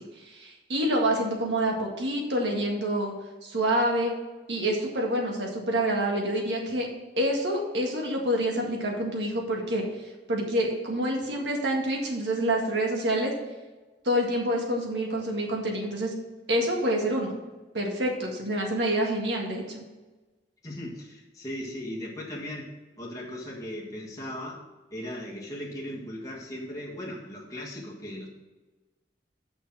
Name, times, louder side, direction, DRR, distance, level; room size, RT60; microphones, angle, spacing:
voice 1, 0.2-3.1 3.4-4.1 4.5-6.9 7.2-9.8 10.3-13.3 14.0-16.1 16.5-17.4 17.7-19.8, right 1 dB, 75° right, 0 dB, 1.8 m, -27 dB
voice 2, 20.6-24.6 24.9-28.3, left 1 dB, 20° left, -3 dB, 1.7 m, -38 dB
6.5 x 6.2 x 6.2 m, 1.2 s
head